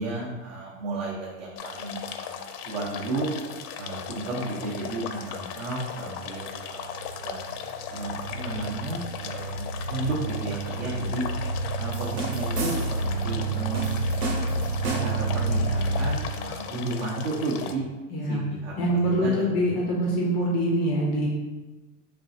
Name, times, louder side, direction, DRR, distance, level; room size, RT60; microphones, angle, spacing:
voice 1, 0.0-3.3 3.8-6.9 7.2-7.4 7.9-11.2 11.8-14.0 14.8-17.8 18.2-19.5, right 2 dB, 55° right, -5 dB, 1.0 m, -33 dB
sound 1, 1.6-17.7, left 7 dB, 75° left, 0.6 m, -37 dB
sound 2, 6.6-16.2, right 3 dB, 15° right, 0.7 m, -30 dB
sound 3, 11.9-13.1 13.7-15.3, right 3 dB, 80° right, 1.5 m, -33 dB
voice 2, 18.1-18.5 18.8-21.3, equal, 20° left, -2 dB, 0.4 m, -24 dB
4.4 x 3.2 x 2.7 m, 1.2 s
supercardioid pair, 145°, 46 cm